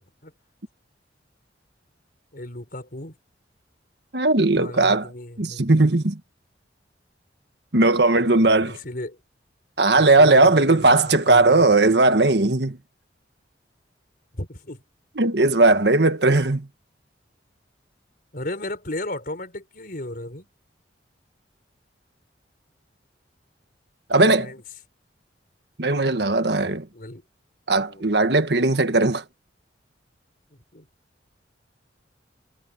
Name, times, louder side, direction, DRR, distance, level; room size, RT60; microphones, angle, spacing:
voice 1, 2.3-3.1 4.6-5.7 8.7-9.2 9.9-11.6 14.3-14.8 18.3-20.5 24.2-24.6 26.9-27.2 27.9-28.4 30.5-30.9, left 1 dB, 50° left, 4.7 m, -34 dB
voice 2, 4.1-5.1 5.4-6.2 7.7-8.8 9.8-12.8 15.2-16.7 24.1-24.4 25.8-26.9 27.7-29.2, right 2 dB, 65° right, 1.5 m, -18 dB
head